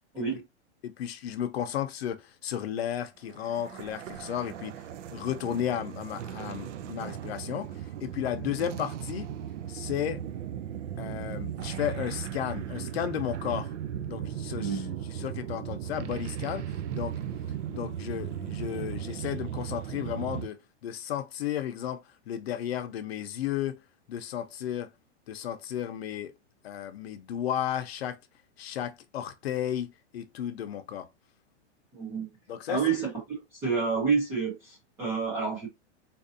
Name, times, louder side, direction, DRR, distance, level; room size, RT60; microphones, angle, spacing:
voice 1, 0.8-4.7 5.1-9.3 9.7-10.2 11.0-13.7 14.1-14.8 15.1-17.1 17.7-23.8 24.1-24.9 25.3-26.3 26.6-28.2 28.6-31.1 32.5-32.8, left 10 dB, 60° left, 0.7 m, -33 dB
sound 1, 3.3-20.5, right 10 dB, 90° right, 0.6 m, -37 dB
voice 2, 14.5-15.0 31.9-32.3 32.7-35.7, right 5 dB, 10° right, 0.4 m, -29 dB
4.0 x 2.6 x 2.6 m
supercardioid pair, 175°, 35 cm